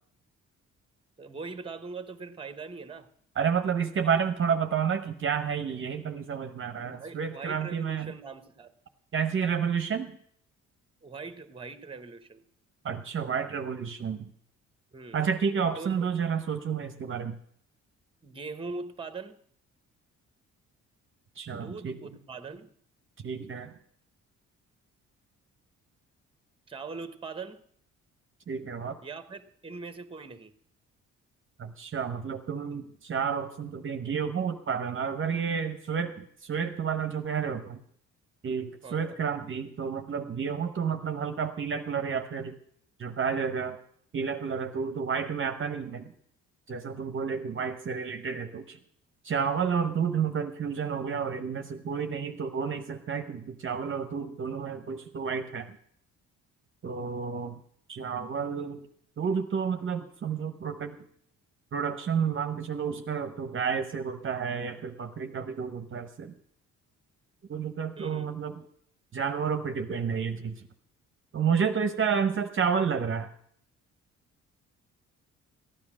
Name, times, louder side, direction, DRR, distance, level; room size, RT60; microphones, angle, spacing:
voice 1, 1.2-3.1 4.0-4.2 6.8-8.7 11.0-12.4 14.9-15.2 15.8-16.1 18.2-19.4 21.5-22.7 26.7-27.6 29.0-30.5 38.8-39.2 68.0-68.3, right 4 dB, 20° right, 11 dB, 1.1 m, -41 dB
voice 2, 3.4-8.1 9.1-10.2 12.8-14.3 15.1-17.4 21.4-22.0 23.2-23.7 28.5-29.0 31.6-37.8 38.4-42.5 43.0-43.8 44.1-46.1 46.7-48.8 49.2-55.8 56.8-57.6 57.9-58.8 59.2-61.0 61.7-66.3 67.5-68.5 69.1-70.6 71.3-73.3, right 6 dB, 40° right, 8 dB, 0.9 m, -30 dB
14.5 x 9.7 x 6.1 m, 0.64 s
cardioid pair, 90°, 30 cm